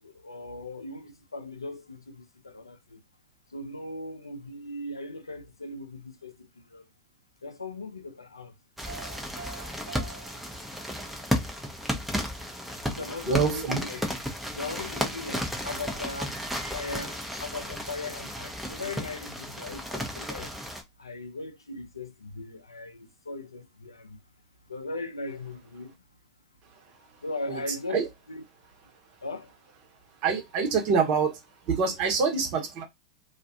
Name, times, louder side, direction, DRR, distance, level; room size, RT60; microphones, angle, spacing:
voice 1, 0.0-3.0 3.5-6.9 7.4-8.5 12.9-14.1 14.5-16.4 16.7-20.6 21.0-24.2 24.7-26.0 27.2-28.0 28.3-28.4 29.2-29.5, left 3 dB, 90° left, 0.4 m, -38 dB
sound 1, 8.8-20.8, equal, 5° right, 0.7 m, -33 dB
Piano, 8.9-11.4, right 4 dB, 70° right, 1.0 m, -46 dB
voice 2, 13.3-13.8 27.5-27.6 27.9-28.1 30.2-31.4 31.6-32.8, right 5 dB, 45° right, 1.0 m, -25 dB
2.4 x 2.3 x 2.6 m
figure-of-eight pair, 90°, 2 cm